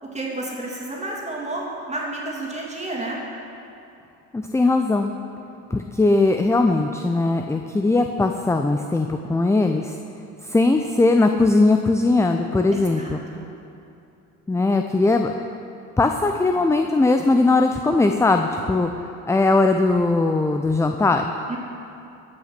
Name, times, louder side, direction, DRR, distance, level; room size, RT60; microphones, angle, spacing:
voice 1, 0.0-3.2 12.7-13.5 21.5-21.6, right 2 dB, 20° right, -3 dB, 2.7 m, -31 dB
voice 2, 4.3-5.2 5.7-9.9 10.4-13.2 14.5-15.3 16.0-18.9 19.3-21.2, left 3 dB, 10° left, 5 dB, 0.4 m, -19 dB
15.0 x 5.9 x 5.9 m, 2.7 s
supercardioid pair, 75°, 34 cm